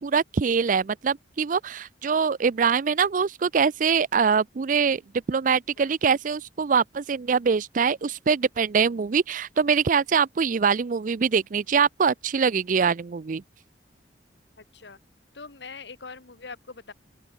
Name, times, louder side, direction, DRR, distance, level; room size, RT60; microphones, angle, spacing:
voice 1, 0.0-5.0 5.3-13.4, right 6 dB, 45° right, 0.4 m, -23 dB
voice 2, 14.6-15.0 15.3-16.9, left 4 dB, 70° left, 1.5 m, -42 dB
open air
head